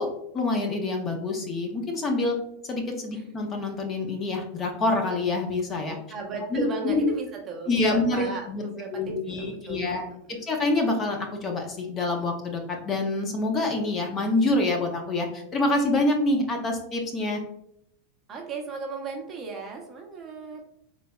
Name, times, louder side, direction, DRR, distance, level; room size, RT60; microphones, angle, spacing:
voice 1, 0.0-2.4 2.6-6.0 6.5-7.1 7.7-8.6 8.9-10.0 10.5-17.4, left 2 dB, 25° left, 2 dB, 0.6 m, -26 dB
voice 2, 6.1-10.0 10.3-10.4 18.3-20.6, right 4 dB, 25° right, 0 dB, 0.7 m, -36 dB
3.8 x 3.2 x 2.3 m, 0.74 s
supercardioid pair, 150°, 0 cm